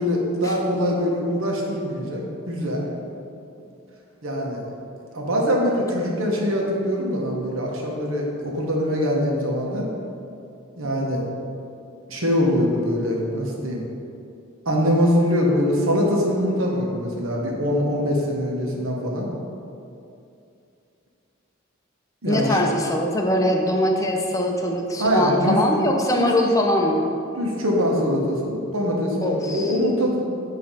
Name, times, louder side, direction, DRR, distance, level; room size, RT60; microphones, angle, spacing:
voice 1, 0.0-2.8 4.2-4.6 5.1-9.9 10.8-11.2 12.1-13.8 14.6-19.3 22.2-22.6 25.0-25.6 26.2-26.3 27.4-30.2, equal, 85° right, -1 dB, 1.3 m, -23 dB
voice 2, 22.3-27.1 29.2-29.8, left 1 dB, 15° left, 1 dB, 0.6 m, -22 dB
8.9 x 3.1 x 5.6 m, 2.6 s
head